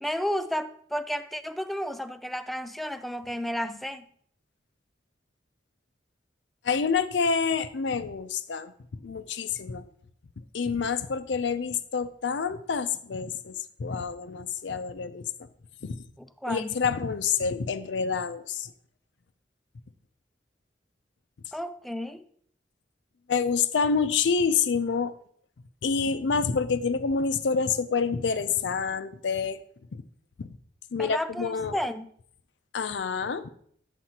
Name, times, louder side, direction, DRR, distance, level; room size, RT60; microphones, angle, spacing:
voice 1, 0.0-4.1 16.2-16.7 21.5-22.2 31.0-32.1, equal, ahead, 0.4 m, -32 dB
voice 2, 6.6-8.7 9.0-9.8 10.5-15.5 15.8-16.0 16.5-18.7 23.3-25.2 25.8-29.6 29.9-30.0 30.4-30.5 30.9-31.8 32.7-33.5, left 5 dB, 70° left, 0.5 m, -27 dB
8.9 x 7.5 x 2.8 m
head